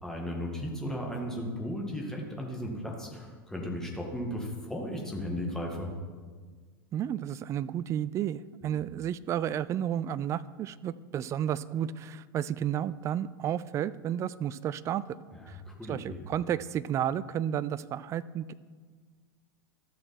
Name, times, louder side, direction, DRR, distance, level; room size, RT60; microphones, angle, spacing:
voice 1, 0.0-5.9 8.6-8.9 15.5-16.2, equal, 5° left, -1 dB, 2.0 m, -36 dB
voice 2, 6.9-15.2 15.5-15.6 15.9-18.5, right 10 dB, 25° right, 17 dB, 0.3 m, -32 dB
13.0 x 6.5 x 4.4 m, 1.5 s
figure-of-eight pair, 90°, 12 cm